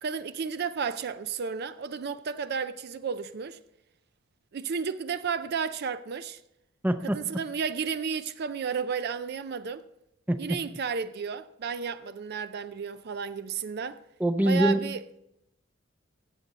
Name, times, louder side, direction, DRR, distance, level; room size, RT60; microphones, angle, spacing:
voice 1, 0.0-3.6 4.5-6.4 7.0-9.9 10.4-14.0 14.4-15.0, right 6 dB, 55° right, 0.4 m, -32 dB
voice 2, 6.8-7.2 10.3-10.6 14.2-14.9, right 1 dB, 10° right, 0.5 m, -24 dB
15.5 x 7.5 x 4.0 m
head